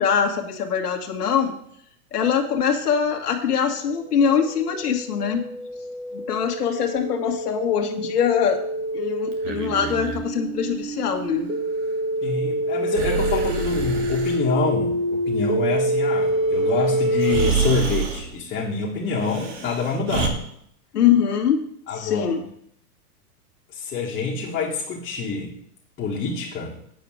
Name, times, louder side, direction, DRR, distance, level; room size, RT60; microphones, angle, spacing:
voice 1, 0.0-1.5 2.1-5.4 6.1-8.6 8.9-11.5 20.9-21.6 22.0-22.4, left 7 dB, 75° left, 2 dB, 1.7 m, -23 dB
sound 1, 4.2-17.5, right 1 dB, 30° right, 1.9 m, -26 dB
Breathing, 9.3-10.2 12.9-14.4 16.6-16.7 17.2-18.3 19.2-20.3, right 5 dB, 55° right, 2.1 m, -27 dB
voice 2, 12.2-20.4 21.9-22.4 23.7-25.5 26.0-26.7, left 4 dB, 20° left, -5 dB, 1.5 m, -26 dB
8.6 x 4.9 x 7.6 m, 0.68 s
hypercardioid pair, 140°, 46 cm